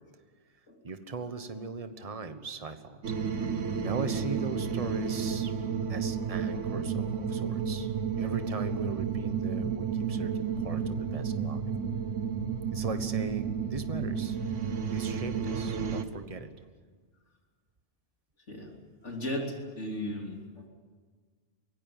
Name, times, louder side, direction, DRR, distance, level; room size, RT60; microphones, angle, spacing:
voice 1, 0.8-3.0 3.3-5.5 5.9-11.6 12.7-14.4 14.9-16.5, right 4 dB, 30° right, 9 dB, 1.3 m, -39 dB
sound 1, 3.0-16.0, right 6 dB, 80° right, 1.5 m, -32 dB
voice 2, 19.0-20.7, left 1 dB, 70° left, 1 dB, 3.8 m, -36 dB
23.5 x 18.5 x 8.8 m, 1.5 s
omnidirectional pair, 1.3 m